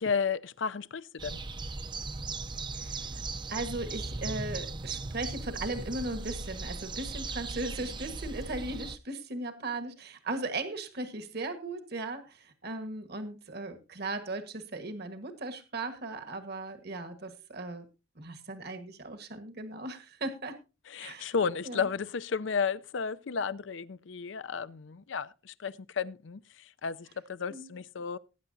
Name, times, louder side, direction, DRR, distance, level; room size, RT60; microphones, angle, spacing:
voice 1, 0.0-1.4 20.9-28.2, left 6 dB, 70° left, 0.5 m, -33 dB
sound 1, 1.2-9.0, right 3 dB, 25° right, 0.6 m, -38 dB
voice 2, 2.7-3.2 3.5-17.9 18.2-20.5 21.0-21.3 21.6-21.8 27.5-27.7, right 2 dB, 55° right, 1.4 m, -37 dB
19.0 x 9.3 x 2.7 m
head